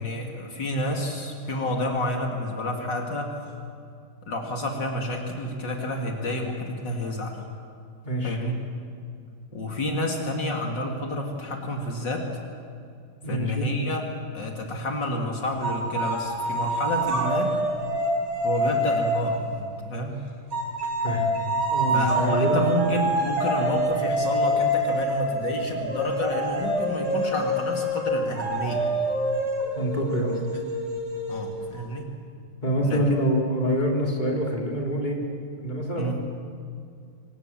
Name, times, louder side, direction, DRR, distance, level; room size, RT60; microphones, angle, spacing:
voice 1, 0.0-3.3 4.3-7.4 8.2-8.5 9.5-12.3 13.3-14.0 14.3-17.5 18.4-20.2 21.9-28.9 31.3-32.1 32.8-33.0 36.0-36.2, left 1 dB, 65° left, 1 dB, 3.1 m, -29 dB
voice 2, 8.0-8.4 13.2-13.7 21.0-21.3 21.7-22.6 29.8-30.4 32.6-35.2 35.6-36.1, equal, 20° left, -1 dB, 3.7 m, -26 dB
sound 1, 15.6-19.5 20.5-31.8, right 1 dB, 60° right, 5.8 m, -26 dB
28.5 x 25.5 x 7.5 m, 2.3 s
omnidirectional pair, 2.1 m